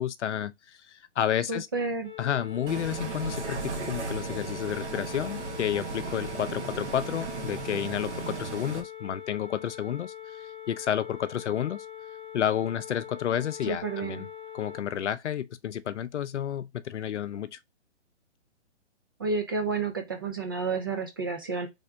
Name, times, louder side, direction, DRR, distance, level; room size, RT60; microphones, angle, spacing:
voice 1, 0.0-1.7 2.2-11.9 12.3-14.3 14.5-17.6, left 10 dB, 75° left, 0.6 m, -31 dB
voice 2, 1.5-2.1 13.7-14.3 19.2-21.7, right 4 dB, 20° right, 0.3 m, -30 dB
sound 1, 2.0-14.8, left 10 dB, 10° left, 0.7 m, -43 dB
Bus, 2.7-8.8, right 5 dB, 70° right, 1.3 m, -36 dB
3.5 x 2.7 x 3.3 m
hypercardioid pair, 140°, 35 cm